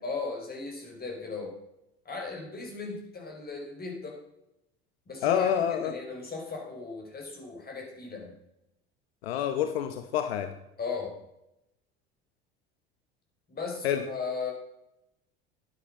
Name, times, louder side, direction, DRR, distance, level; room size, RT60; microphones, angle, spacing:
voice 1, 0.0-1.6 2.0-4.2 5.1-8.3 10.8-11.2 13.5-14.5, left 4 dB, 30° left, 1 dB, 5.2 m, -37 dB
voice 2, 5.2-5.9 9.2-10.5 13.8-14.0, left 9 dB, 75° left, 8 dB, 0.9 m, -27 dB
11.5 x 8.3 x 5.5 m, 0.86 s
hypercardioid pair, 70°, 31 cm